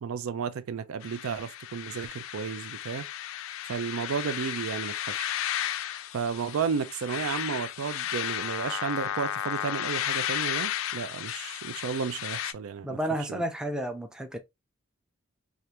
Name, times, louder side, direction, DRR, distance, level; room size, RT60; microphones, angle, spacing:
voice 1, 0.0-3.1 3.7-5.3 6.1-13.4, right 6 dB, 90° right, 0.4 m, -33 dB
sound 1, 1.0-12.5, left 11 dB, 70° left, 0.3 m, -34 dB
voice 2, 12.8-14.4, right 1 dB, 5° right, 0.4 m, -31 dB
3.3 x 2.4 x 2.9 m
head